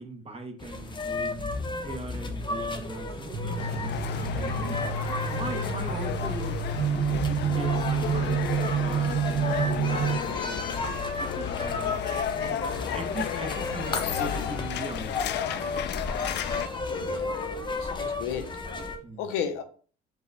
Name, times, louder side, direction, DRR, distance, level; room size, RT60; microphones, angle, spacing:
voice 1, 0.0-1.5 1.8-4.9 5.3-8.4 8.8-10.9 11.2-15.1 19.0-19.2, right 2 dB, 30° right, 5 dB, 1.0 m, -39 dB
sound 1, 0.6-19.0, left 3 dB, 20° left, 0.7 m, -34 dB
sound 2, 3.3-10.2, right 7 dB, 80° right, 0.7 m, -28 dB
sound 3, 3.6-16.7, left 10 dB, 55° left, 0.4 m, -33 dB
voice 2, 15.6-16.0 16.7-18.6 19.2-19.6, left 8 dB, 85° left, 7 dB, 0.7 m, -35 dB
4.6 x 2.3 x 4.0 m, 0.41 s
supercardioid pair, 85°, 21 cm